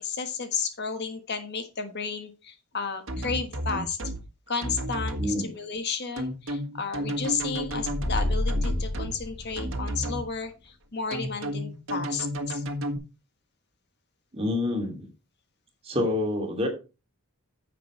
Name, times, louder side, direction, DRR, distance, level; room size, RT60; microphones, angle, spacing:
voice 1, 0.0-4.0 4.5-12.6, left 5 dB, 50° left, 8 dB, 1.4 m, -33 dB
sound 1, 3.1-4.2 4.6-5.3 6.2-9.2 9.6-10.2 11.1-13.0, equal, 60° right, 1.7 m, -32 dB
voice 2, 5.2-5.5 14.3-15.1 15.8-16.7, left 1 dB, 25° right, 2 dB, 2.7 m, -27 dB
sound 2, 7.5-10.1, left 1 dB, 25° left, 0.5 m, -30 dB
10.0 x 7.6 x 3.3 m, 0.29 s
head